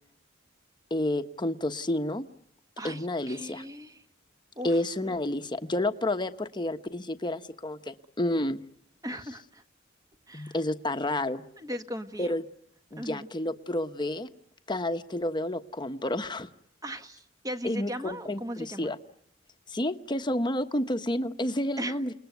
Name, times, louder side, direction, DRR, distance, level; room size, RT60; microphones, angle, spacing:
voice 1, 0.9-2.2 2.8-3.6 4.6-8.6 10.3-11.4 12.2-12.4 12.9-14.3 14.7-16.5 17.6-19.0 19.7-22.1, left 1 dB, 25° left, 9 dB, 1.2 m, -30 dB
voice 2, 2.8-4.0 4.5-4.8 9.0-9.6 10.3-10.5 11.6-12.3 13.0-13.3 16.8-18.9 21.8-22.0, equal, 20° right, 8 dB, 1.5 m, -38 dB
29.5 x 19.5 x 9.3 m, 0.75 s
head